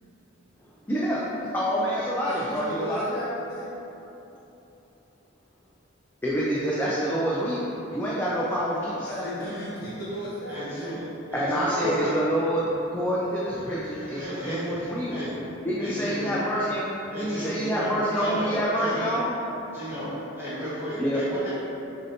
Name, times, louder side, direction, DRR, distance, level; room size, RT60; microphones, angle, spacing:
voice 1, 0.9-1.2 1.5-3.1 6.2-9.5 11.3-12.6 12.9-15.2 15.6-16.8 17.2-19.3 21.0-21.2, equal, 10° left, -8 dB, 0.4 m, -27 dB
voice 2, 2.3-3.7 9.0-10.9, equal, 45° left, -8 dB, 1.1 m, -35 dB
voice 3, 10.5-11.0 11.3-12.2 13.9-15.4 15.8-16.3 17.1-18.5 18.8-19.1 19.7-21.5, equal, 10° right, -11 dB, 1.2 m, -33 dB
6.4 x 2.7 x 2.8 m, 3.0 s
head